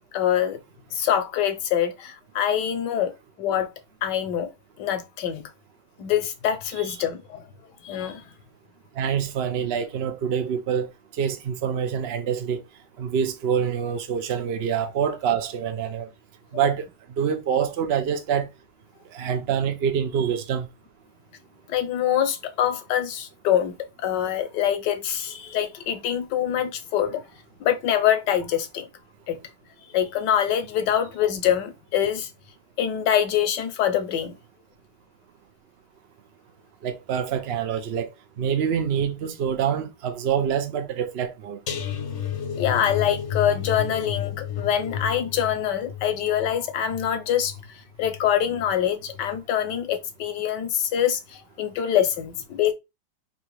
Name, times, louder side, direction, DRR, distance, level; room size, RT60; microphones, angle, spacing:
voice 1, 0.1-0.6 0.9-3.1 3.4-3.7 4.0-4.5 4.8-5.4 6.0-7.5 7.8-8.3 21.7-27.2 27.6-28.9 29.3-29.4 29.9-32.3 32.8-34.4 42.6-52.7, left 10 dB, 75° left, 1.4 m, -25 dB
voice 2, 9.0-12.6 13.0-16.1 16.5-16.9 17.2-18.5 19.1-20.7 36.8-41.6, right 8 dB, 80° right, 0.5 m, -26 dB
sound 1, 41.7-48.7 49.1-49.4 49.7-49.8, left 8 dB, 55° left, 0.8 m, -32 dB
3.8 x 2.8 x 4.7 m
omnidirectional pair, 1.9 m